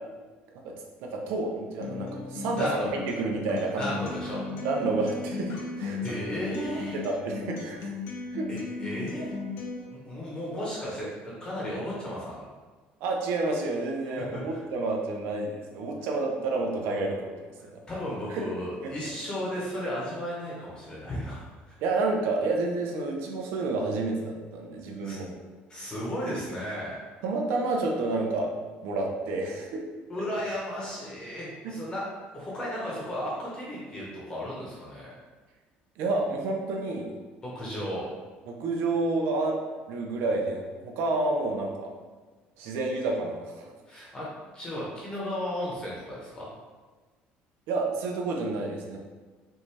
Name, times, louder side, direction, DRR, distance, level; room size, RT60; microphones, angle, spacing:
voice 1, 1.0-4.0 4.6-6.0 6.6-7.9 8.3-8.5 13.0-17.3 17.6-17.8 18.3-18.5 18.8-18.9 21.8-25.3 27.2-28.5 28.8-29.8 31.6-31.7 36.0-37.1 38.5-39.6 39.9-41.9 42.6-43.7 47.7-49.0, right 3 dB, 80° right, 1 dB, 0.8 m, -29 dB
Acoustic guitar, 1.8-9.8, left 4 dB, 60° left, 0.8 m, -36 dB
voice 2, 2.6-2.9 3.8-4.4 6.0-7.0 8.5-9.3 9.9-12.4 14.2-14.6 17.6-21.8 25.0-25.2 25.7-27.0 30.1-32.0 32.3-35.1 37.4-38.0 43.9-44.3 44.5-46.5, left 1 dB, 20° left, -5 dB, 1.0 m, -34 dB
5.6 x 2.7 x 3.3 m, 1.3 s
cardioid pair, 165°, 4 cm